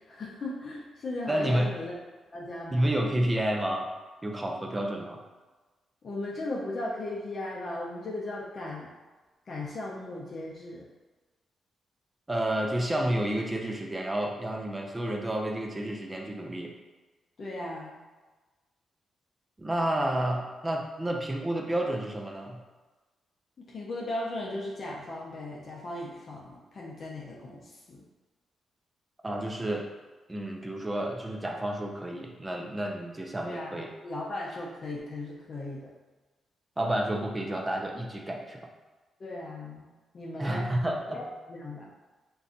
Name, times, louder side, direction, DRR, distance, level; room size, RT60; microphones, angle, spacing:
voice 1, 0.0-1.9 2.3-3.0 6.0-8.9 9.5-10.9 17.4-18.0 23.6-28.0 33.5-35.9 39.2-40.7 41.1-41.9, left 2 dB, 50° left, -3 dB, 0.5 m, -37 dB
voice 2, 1.3-1.7 2.7-3.9 4.2-5.2 12.3-16.7 19.6-22.6 29.2-29.9 30.3-33.9 36.8-38.6 40.4-41.2, right 1 dB, 20° right, 1 dB, 0.4 m, -30 dB
2.5 x 2.3 x 3.7 m, 1.2 s
cardioid pair, 85°, 0 cm